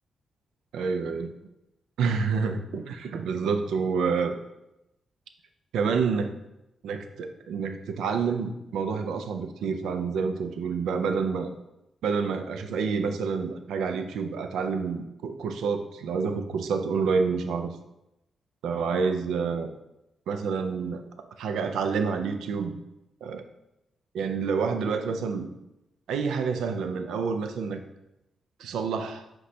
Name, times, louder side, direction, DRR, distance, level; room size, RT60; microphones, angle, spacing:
voice 1, 0.7-1.3 2.0-4.4 5.7-6.3 6.8-11.5 12.0-17.7 18.6-19.7 20.3-21.0 21.4-22.8 23.2-23.4 24.1-25.5 26.1-27.8 28.6-29.2, right 5 dB, 75° right, 7 dB, 0.3 m, -28 dB
4.9 x 2.2 x 4.1 m, 0.90 s
hypercardioid pair, 45°, 0 cm